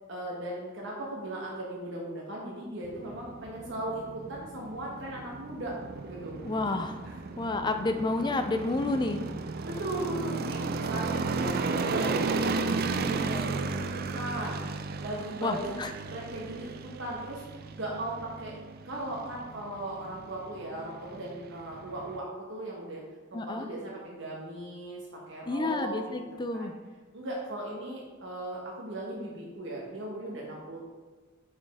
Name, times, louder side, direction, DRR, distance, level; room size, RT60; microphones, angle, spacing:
voice 1, 0.1-5.8 6.0-6.3 7.0-7.1 9.6-15.8 16.1-18.6 18.8-23.0 23.3-25.9 26.5-26.7 27.1-30.8, right 1 dB, 65° right, -3 dB, 1.2 m, -37 dB
sound 1, 2.8-22.2, right 4 dB, 50° right, 0.4 m, -35 dB
voice 2, 6.4-7.0 7.4-9.2 15.4-15.9 23.3-23.7 25.5-26.7, left 2 dB, 20° left, 7 dB, 0.4 m, -30 dB
6.5 x 5.2 x 3.5 m, 1.3 s
head